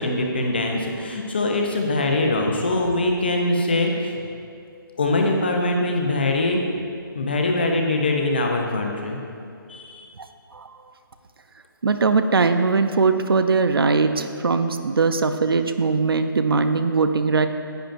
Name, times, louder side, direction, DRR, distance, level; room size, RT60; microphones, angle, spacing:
voice 1, 0.0-4.1 5.0-6.6 7.1-9.2 9.7-10.1, left 2 dB, 25° left, 2 dB, 0.6 m, -22 dB
voice 2, 11.8-17.5, right 4 dB, 85° right, 9 dB, 0.6 m, -20 dB
10.5 x 8.8 x 2.6 m, 2.4 s
hypercardioid pair, 180°, 12 cm